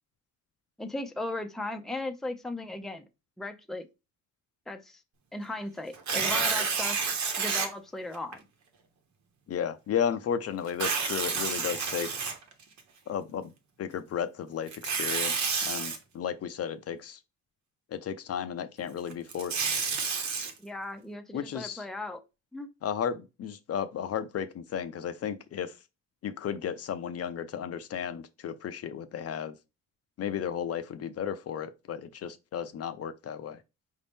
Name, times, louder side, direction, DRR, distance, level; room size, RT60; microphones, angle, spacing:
voice 1, 0.8-3.1 3.4-3.9 4.7-5.0 5.3-7.0 7.4-8.4 11.7-11.8 20.6-22.2 22.5-22.7, left 2 dB, ahead, 0.5 m, -37 dB
Tearing, 5.9-7.7 8.3-8.4 10.7-12.8 14.7-16.0 19.1-20.5, right 5 dB, 70° right, 1.1 m, -29 dB
voice 2, 9.5-12.1 13.1-13.5 13.8-17.2 17.9-19.7 21.3-21.8 22.8-25.7 26.2-29.5 30.2-33.6, left 8 dB, 55° left, 0.6 m, -34 dB
5.0 x 2.7 x 3.5 m
cardioid pair, 90°, 30 cm